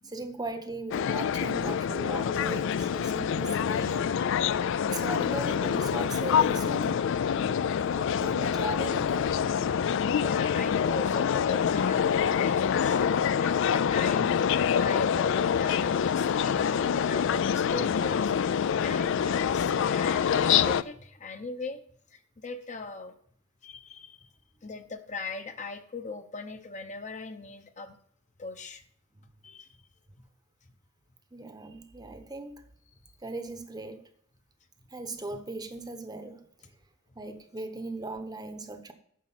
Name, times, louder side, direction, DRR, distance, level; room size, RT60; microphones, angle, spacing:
voice 1, 0.0-4.2 4.9-7.1 7.3-9.4 31.3-32.6 33.2-34.1 34.9-36.4 37.2-38.9, right 2 dB, 20° right, 0.9 m, -38 dB
sound 1, 0.9-20.8, left 7 dB, 65° left, 0.4 m, -26 dB
voice 2, 10.2-21.8 22.1-23.1 23.6-24.3 24.6-27.9 28.4-28.8 29.4-29.7 30.2-30.3 33.0-33.1, left 3 dB, 35° left, 0.8 m, -40 dB
9.4 x 6.2 x 5.9 m
head